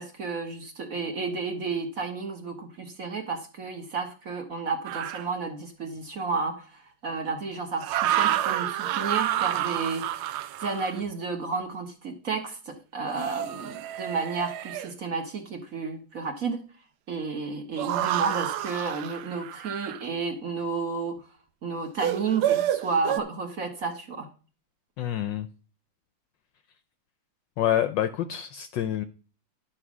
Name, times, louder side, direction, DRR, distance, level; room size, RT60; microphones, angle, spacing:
voice 1, 0.0-10.3 10.6-16.6 17.1-21.1 21.6-24.3, right 4 dB, 45° right, 1.6 m, -32 dB
sound 1, 4.8-5.3 7.8-11.0 13.1-14.9 17.8-20.0 22.0-23.2, right 12 dB, 80° right, 1.4 m, -29 dB
voice 2, 25.0-25.5 27.6-29.0, left 11 dB, 70° left, 1.1 m, -27 dB
11.5 x 4.8 x 6.1 m
omnidirectional pair, 2.4 m